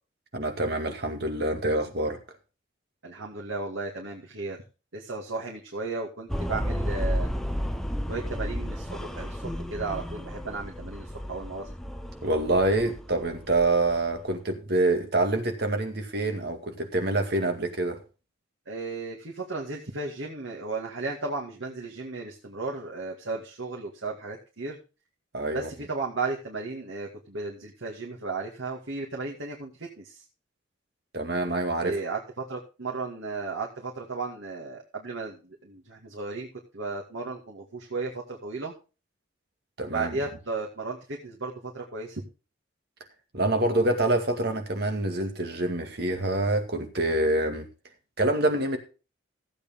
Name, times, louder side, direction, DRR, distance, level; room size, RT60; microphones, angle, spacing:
voice 1, 0.3-2.2 12.2-18.0 25.3-25.7 31.1-32.0 39.8-40.2 43.3-47.7 48.2-48.8, right 2 dB, 55° right, 2.2 m, -26 dB
voice 2, 3.0-4.6 4.9-7.3 8.1-11.7 18.7-24.8 25.5-30.2 31.8-36.5 36.7-38.7 39.9-41.0 41.2-42.2, right 3 dB, 85° right, 2.2 m, -34 dB
sound 1, 6.3-14.3, equal, ahead, 0.8 m, -33 dB
15.5 x 8.3 x 3.7 m
head